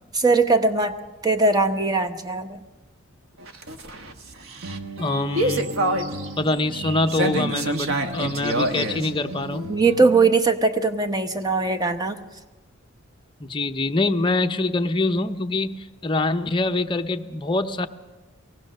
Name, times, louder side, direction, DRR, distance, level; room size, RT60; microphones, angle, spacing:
voice 1, 0.1-1.0 1.2-2.6 9.7-12.2, right 3 dB, 20° right, 6 dB, 1.0 m, -20 dB
sound 1, 3.4-10.2, right 1 dB, 65° right, 1.3 m, -27 dB
voice 2, 5.0-5.7 6.4-9.7 13.4-17.9, left 2 dB, 25° left, 6 dB, 0.7 m, -24 dB
23.5 x 18.5 x 6.5 m, 1.3 s
head